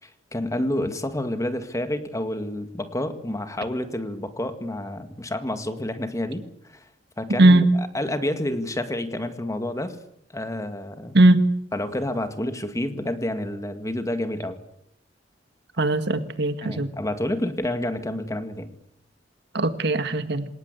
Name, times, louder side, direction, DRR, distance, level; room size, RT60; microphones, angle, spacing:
voice 1, 0.0-6.8 7.2-10.0 10.3-11.2 11.7-14.6 16.6-18.7, left 1 dB, 15° left, 9 dB, 2.0 m, -29 dB
voice 2, 15.8-16.9 19.5-20.5, right 2 dB, 60° right, 10 dB, 1.8 m, -18 dB
27.0 x 18.5 x 8.3 m, 0.73 s
head